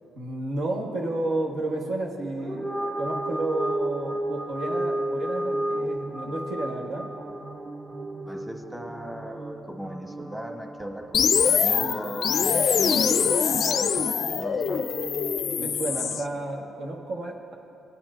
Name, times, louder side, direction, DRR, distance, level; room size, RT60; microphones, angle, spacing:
voice 1, 0.1-7.1 11.8-12.0 15.6-17.5, right 2 dB, 80° right, -1 dB, 1.3 m, -31 dB
sound 1, 2.4-9.0, right 1 dB, 30° right, 1.0 m, -31 dB
sound 2, 3.0-16.2, right 3 dB, 55° right, 1.6 m, -43 dB
voice 2, 8.3-14.8, equal, 5° right, 2 dB, 1.0 m, -38 dB
sound 3, 11.1-16.2, left 6 dB, 60° left, 0.4 m, -24 dB
20.5 x 8.6 x 2.5 m, 2.9 s
cardioid pair, 90°, 0 cm